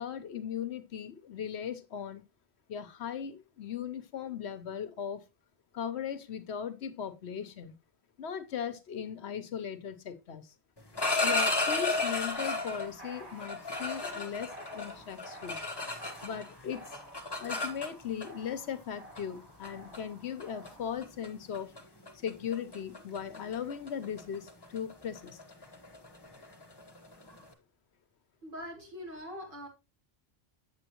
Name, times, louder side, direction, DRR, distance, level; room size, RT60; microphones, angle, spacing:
voice 1, 0.0-2.2 2.7-5.2 5.7-7.8 8.2-10.5 11.2-15.6 16.2-16.9 17.4-21.7 22.1-25.4, left 8 dB, 80° left, 1.1 m, -38 dB
sound 1, 10.8-12.9 13.4-16.5 16.7-18.3 19.2-19.3 19.6-20.0 20.4-20.7 21.0-21.3 21.5-21.8 22.1-27.4, left 3 dB, 25° left, 1.2 m, -33 dB
sound 2, 12.3-21.0, right 1 dB, 80° right, 4.9 m, -51 dB
voice 2, 28.4-29.7, equal, 55° right, 2.7 m, -42 dB
8.0 x 7.6 x 2.9 m
omnidirectional pair, 1.1 m